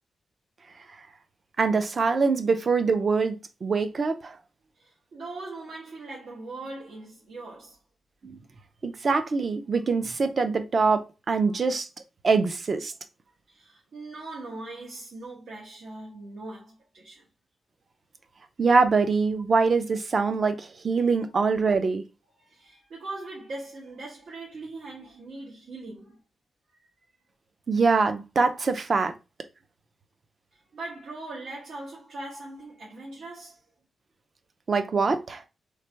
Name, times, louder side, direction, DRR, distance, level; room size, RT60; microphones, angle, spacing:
voice 1, 1.6-4.4 8.2-8.4 8.8-11.9 12.2-12.9 18.6-22.0 27.7-29.1 34.7-35.4, right 4 dB, 35° right, 0.5 m, -24 dB
voice 2, 4.8-7.8 11.5-11.6 13.5-17.3 20.9-21.5 22.4-26.2 28.5-28.7 30.5-33.6, right 2 dB, 75° right, 1.1 m, -41 dB
3.2 x 2.5 x 4.4 m
wide cardioid pair, 175°, 0 cm